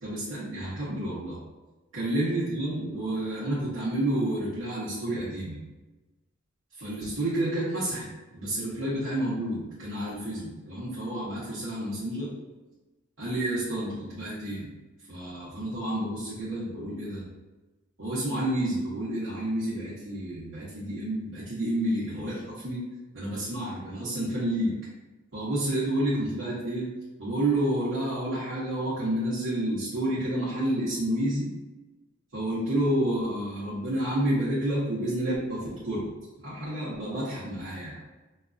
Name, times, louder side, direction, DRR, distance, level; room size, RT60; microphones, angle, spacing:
voice 1, 0.0-1.4 1.9-5.6 6.7-12.3 13.2-14.7 15.1-17.3 18.0-22.8 23.1-24.8 25.3-26.9 27.2-31.5 32.3-36.0 36.4-38.1, right 1 dB, 75° right, -10 dB, 1.1 m, -30 dB
5.3 x 2.3 x 2.5 m, 1.1 s
head